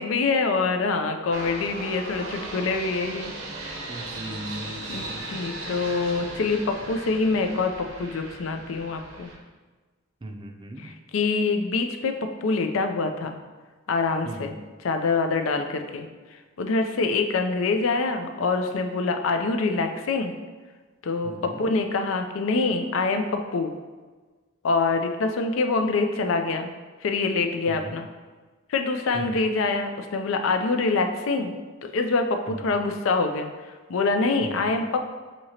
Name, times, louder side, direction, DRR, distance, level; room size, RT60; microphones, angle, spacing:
voice 1, 0.0-3.3 3.6-3.8 4.9-9.3 10.8-13.4 13.9-14.6 14.8-16.1 16.6-20.3 21.0-23.7 24.6-26.7 27.0-28.1 28.7-31.5 31.8-33.5 33.9-35.0, left 3 dB, 80° left, 6 dB, 0.4 m, -25 dB
sound 1, 1.3-9.4, right 2 dB, 80° right, 0.7 m, -37 dB
voice 2, 3.9-5.3 10.2-10.9 14.2-14.6 21.2-21.6 27.7-28.0 29.1-29.4 32.5-32.8 34.4-34.7, right 1 dB, 25° right, 3 dB, 0.4 m, -38 dB
6.1 x 2.8 x 2.8 m, 1.3 s
head